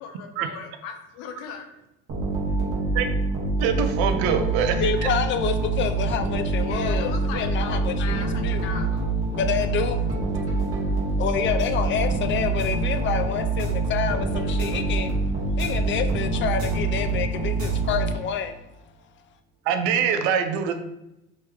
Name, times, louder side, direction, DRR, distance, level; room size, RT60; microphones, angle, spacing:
voice 1, 0.0-1.7 6.6-9.0, left 6 dB, 85° left, 5 dB, 0.7 m, -37 dB
sound 1, 2.1-18.5, right 3 dB, 50° right, 1.3 m, -25 dB
voice 2, 3.6-4.9 19.7-20.8, right 7 dB, 85° right, 7 dB, 0.5 m, -23 dB
voice 3, 4.8-8.7 9.3-10.0 11.2-15.1 15.6-18.6, left 7 dB, 40° left, 8 dB, 0.4 m, -28 dB
3.1 x 2.9 x 3.6 m, 0.88 s
supercardioid pair, 100°, 30 cm